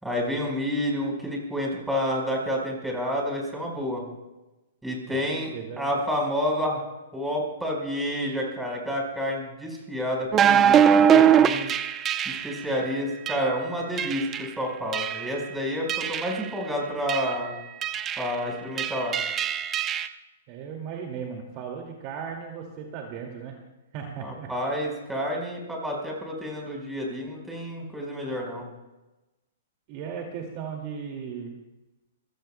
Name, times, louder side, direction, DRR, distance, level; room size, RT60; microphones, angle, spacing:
voice 1, 0.0-4.0 4.8-5.5 5.8-6.8 7.1-11.7 12.2-17.5 18.2-19.2 24.2-28.6, equal, 5° right, -1 dB, 4.6 m, -29 dB
voice 2, 5.1-5.9 20.5-23.6 23.9-24.5 29.9-31.6, right 7 dB, 40° right, 1 dB, 2.2 m, -36 dB
sound 1, 10.3-12.6 13.3-13.5 14.0-14.5 14.9-15.4 15.9-16.4 17.1-17.4 17.8-18.3 18.8-20.1, right 8 dB, 20° right, 0.7 m, -22 dB
27.5 x 16.0 x 2.2 m, 1.1 s
hypercardioid pair, 145°, 0 cm